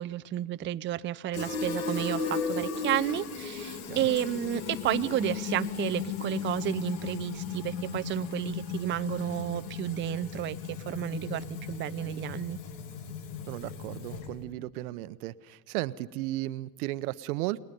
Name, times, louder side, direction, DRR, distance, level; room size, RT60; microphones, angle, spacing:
voice 1, 0.0-12.6, right 12 dB, 25° right, 12 dB, 0.6 m, -32 dB
Fill (with liquid), 1.3-14.4, left 6 dB, 70° left, 2.4 m, -36 dB
voice 2, 13.5-17.6, right 17 dB, 70° right, 16 dB, 0.9 m, -35 dB
30.0 x 20.5 x 5.4 m, 1.3 s
hypercardioid pair, 85°, 46 cm